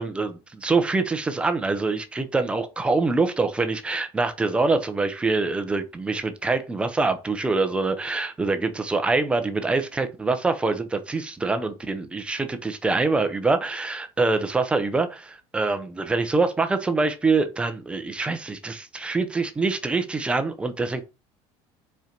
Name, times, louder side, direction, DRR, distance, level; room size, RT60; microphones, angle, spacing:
voice 1, 0.0-21.0, right 3 dB, 10° right, 0.7 m, -25 dB
5.4 x 4.5 x 5.2 m
cardioid pair, 175°, 12 cm